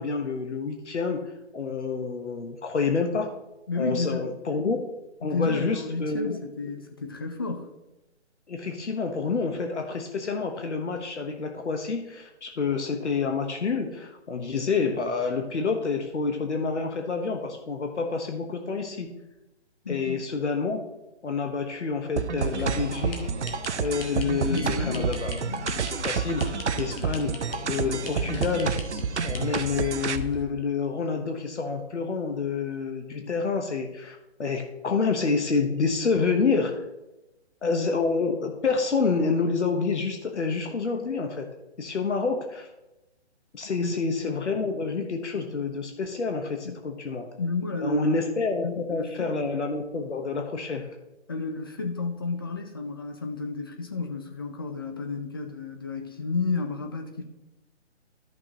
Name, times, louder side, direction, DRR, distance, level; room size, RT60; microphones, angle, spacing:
voice 1, 0.0-3.3 3.8-4.9 5.2-6.4 8.5-19.2 19.9-20.8 21.2-23.2 23.8-25.6 25.9-28.8 29.2-36.8 37.6-41.5 41.8-42.7 43.5-47.3 47.8-50.9, left 4 dB, 80° left, 4 dB, 1.2 m, -28 dB
voice 2, 3.7-4.3 5.2-7.7 19.8-20.3 24.5-25.1 43.8-43.9 46.6-46.8 47.4-48.2 48.6-49.3 51.3-57.2, left 3 dB, 20° left, 4 dB, 0.5 m, -31 dB
sound 1, 22.2-30.2, right 6 dB, 75° right, 0.8 m, -29 dB
sound 2, 22.6-30.4, left 3 dB, 55° left, 1.8 m, -38 dB
13.5 x 6.0 x 3.0 m, 0.98 s
hypercardioid pair, 155°, 35 cm